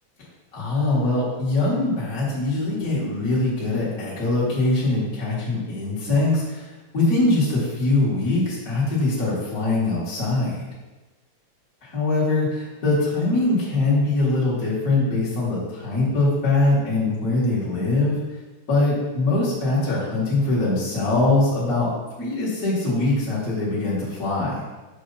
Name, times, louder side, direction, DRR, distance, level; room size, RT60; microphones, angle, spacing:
voice 1, 0.5-10.7 11.8-18.2 18.7-21.9 22.2-24.6, left 2 dB, 35° left, -8 dB, 1.9 m, -22 dB
6.7 x 4.9 x 4.1 m, 1.2 s
omnidirectional pair, 3.3 m